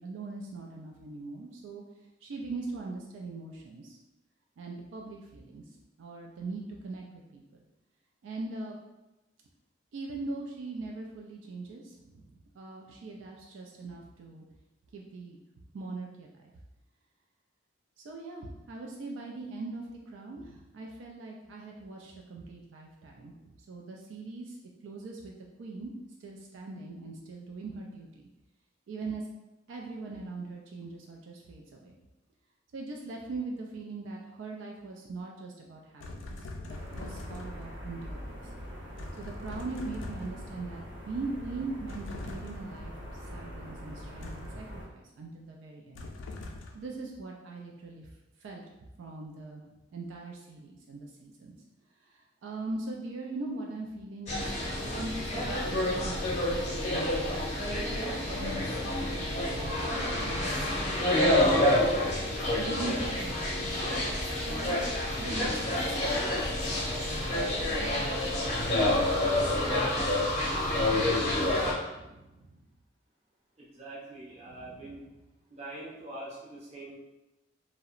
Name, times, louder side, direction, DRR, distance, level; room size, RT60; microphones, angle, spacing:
voice 1, 0.0-1.8 2.2-4.0 4.6-5.6 6.0-7.1 7.3-7.6 8.2-8.8 9.9-14.4 14.9-16.3 18.0-24.6 24.8-25.9 26.2-28.3 28.9-29.3 29.7-32.0 32.7-38.5 39.2-46.0 46.7-48.1 48.4-49.6 49.9-51.6 52.0-63.8 64.4-64.9 65.2-67.5 71.7-72.6 74.5-75.1, right 3 dB, 80° right, 0 dB, 0.3 m, -41 dB
sound 1, 36.0-37.8 39.0-40.5 41.9-42.8 44.2-44.6 45.9-46.9, left 2 dB, 80° left, 0.3 m, -43 dB
sound 2, 36.7-44.8, equal, 60° right, 0.9 m, -43 dB
sound 3, 54.3-71.7, left 1 dB, 35° left, 0.6 m, -28 dB
voice 2, 73.6-75.0 75.5-76.9, right 1 dB, 35° right, -5 dB, 0.6 m, -44 dB
2.8 x 2.0 x 2.4 m, 1.0 s
head